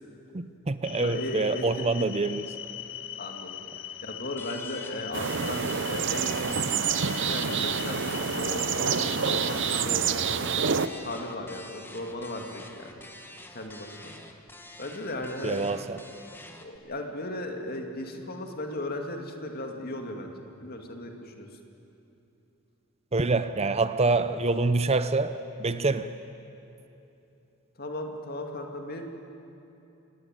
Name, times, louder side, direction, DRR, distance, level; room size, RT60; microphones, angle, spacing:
voice 1, 0.3-2.5 15.4-16.0 23.1-26.1, right 3 dB, 30° right, 12 dB, 0.6 m, -26 dB
sound 1, 0.8-9.8, left 10 dB, 60° left, 0.9 m, -40 dB
voice 2, 0.9-2.0 3.2-6.6 7.2-8.1 8.3-10.6 11.0-12.9 13.5-14.1 14.8-15.6 16.6-21.5 27.8-29.0, left 1 dB, 45° left, 3 dB, 2.4 m, -36 dB
sound 2, 4.4-16.8, left 2 dB, 10° left, 1.5 m, -47 dB
sound 3, 5.1-10.9, right 6 dB, 60° right, 0.8 m, -27 dB
25.5 x 18.5 x 9.2 m, 2.9 s
head